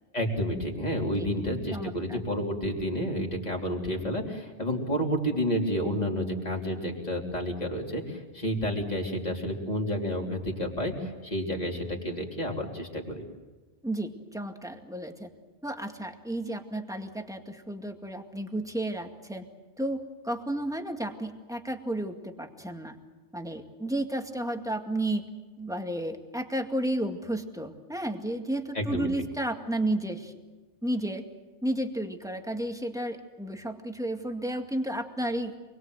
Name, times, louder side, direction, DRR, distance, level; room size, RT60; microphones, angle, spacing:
voice 1, 0.1-13.2 28.7-29.1, equal, 35° left, 0 dB, 3.7 m, -30 dB
voice 2, 1.7-2.2 13.8-15.3 15.6-19.5 19.8-20.0 20.2-23.0 23.3-25.3 25.6-30.3 30.8-31.2 31.6-35.6, right 1 dB, 5° right, 4 dB, 2.1 m, -32 dB
27.5 x 22.0 x 7.9 m, 1.2 s
omnidirectional pair, 1.2 m